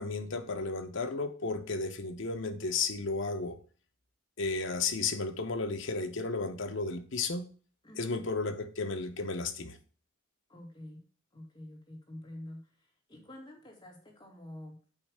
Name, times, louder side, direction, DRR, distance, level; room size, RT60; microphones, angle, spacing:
voice 1, 0.0-3.6 4.4-7.5 8.0-9.8, left 3 dB, 65° left, 0.8 m, -33 dB
voice 2, 7.8-8.2 10.5-11.0 11.3-14.8, left 1 dB, 20° left, 2.3 m, -48 dB
8.8 x 3.2 x 6.4 m
head